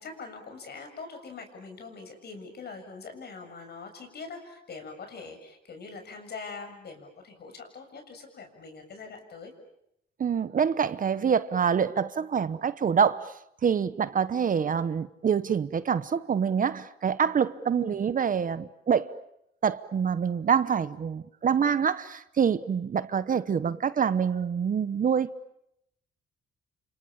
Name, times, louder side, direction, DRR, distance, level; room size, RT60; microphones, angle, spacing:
voice 1, 0.0-9.5 17.8-18.0, left 4 dB, 55° left, 7.2 m, -43 dB
voice 2, 10.2-19.2 19.6-25.5, right 7 dB, 45° right, 1.0 m, -26 dB
29.5 x 27.0 x 7.2 m
cardioid pair, 90°, 20 cm